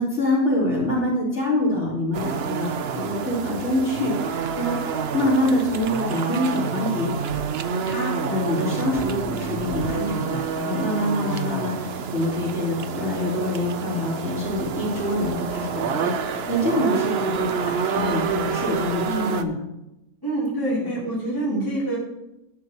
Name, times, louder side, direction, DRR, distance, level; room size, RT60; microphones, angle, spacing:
voice 1, 0.0-4.8 5.1-7.4 7.8-19.6, left 1 dB, 40° left, -6 dB, 4.2 m, -25 dB
sound 1, 2.1-19.4, right 6 dB, 60° right, 0.7 m, -28 dB
voice 2, 20.2-22.0, right 1 dB, 10° left, -6 dB, 3.0 m, -26 dB
11.5 x 11.0 x 3.0 m, 0.90 s
omnidirectional pair, 1.7 m